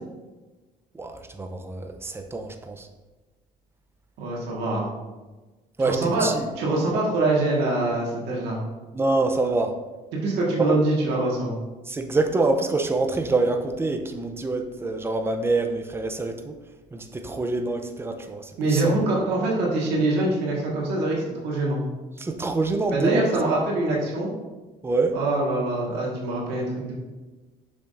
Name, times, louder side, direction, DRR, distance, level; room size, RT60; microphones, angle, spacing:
voice 1, 0.9-2.9 5.8-6.5 8.9-9.8 10.6-10.8 11.9-16.6 16.9-19.0 22.2-23.6 24.8-25.2, right 3 dB, 15° right, 6 dB, 0.6 m, -26 dB
voice 2, 4.2-4.9 5.8-6.3 6.6-8.6 10.1-11.5 18.6-21.8 22.9-24.3 25.1-26.9, right 2 dB, 85° right, -3 dB, 1.6 m, -24 dB
6.4 x 5.9 x 2.5 m, 1.2 s
cardioid pair, 110°, 17 cm